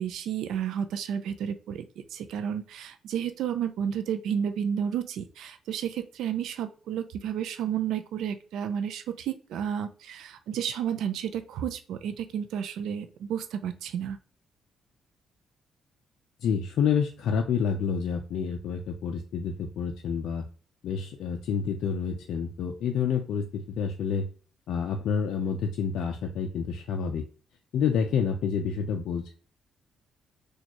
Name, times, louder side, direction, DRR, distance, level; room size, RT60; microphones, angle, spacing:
voice 1, 0.0-14.2, right 8 dB, 80° right, 10 dB, 0.4 m, -31 dB
voice 2, 16.4-20.4 20.8-24.3 24.7-27.2 27.7-29.3, left 6 dB, 75° left, 3 dB, 0.4 m, -28 dB
4.2 x 2.3 x 2.9 m, 0.38 s
cardioid pair, 90°, 0 cm